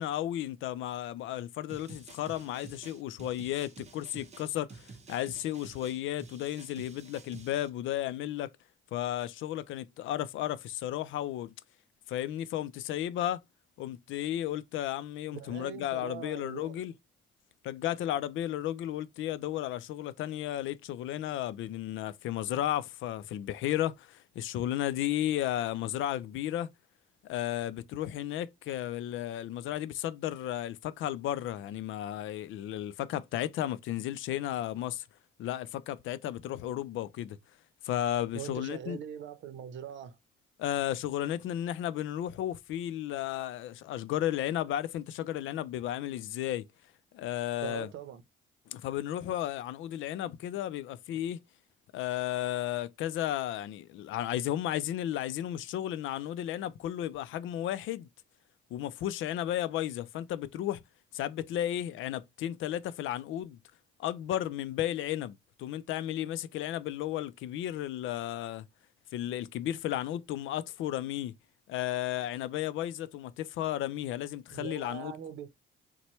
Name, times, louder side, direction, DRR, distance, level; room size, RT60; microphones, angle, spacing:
voice 1, 0.0-8.5 8.9-11.5 12.1-13.4 13.8-16.9 17.6-26.7 27.2-35.1 35.4-37.4 37.8-39.0 40.6-46.7 47.1-47.9 48.7-51.4 51.9-58.1 58.7-60.8 61.1-63.6 64.0-68.7 69.1-71.3 71.7-75.1, left 12 dB, 80° left, 0.4 m, -34 dB
sound 1, 1.7-7.7, right 4 dB, 35° right, 0.8 m, -50 dB
voice 2, 15.3-16.8 38.3-40.2 47.6-48.2 74.5-75.6, right 10 dB, 70° right, 0.7 m, -42 dB
4.2 x 2.2 x 3.0 m
cardioid pair, 90°, 20 cm